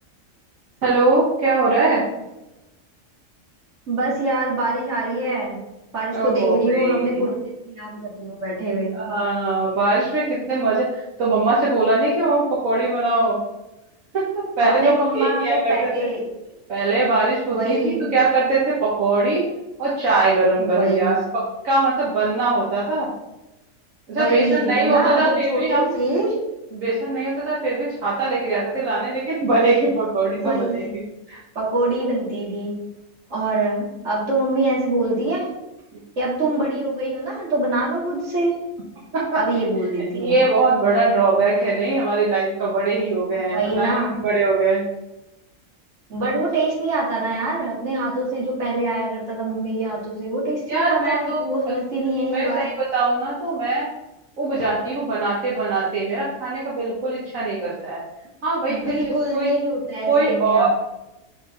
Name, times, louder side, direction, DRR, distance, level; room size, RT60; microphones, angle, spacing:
voice 1, 0.8-2.0 6.1-7.2 8.9-13.4 14.1-16.1 16.7-19.4 19.8-23.1 24.1-25.9 26.7-31.0 31.3-31.4 39.1-39.7 40.1-43.9 44.2-44.9 50.7-51.4 52.3-53.9 54.4-58.0 58.4-59.5 60.1-60.7, right 3 dB, 80° right, -7 dB, 1.6 m, -21 dB
voice 2, 3.9-5.6 5.9-7.4 7.6-8.9 14.6-16.2 17.5-18.1 20.6-21.2 24.1-26.3 30.2-30.9 31.5-32.7 33.3-35.5 36.2-38.5 39.4-40.4 43.4-44.2 46.1-52.7 58.6-60.7, right 2 dB, 60° right, -6 dB, 2.6 m, -24 dB
6.2 x 5.1 x 3.8 m, 0.97 s
omnidirectional pair, 1.4 m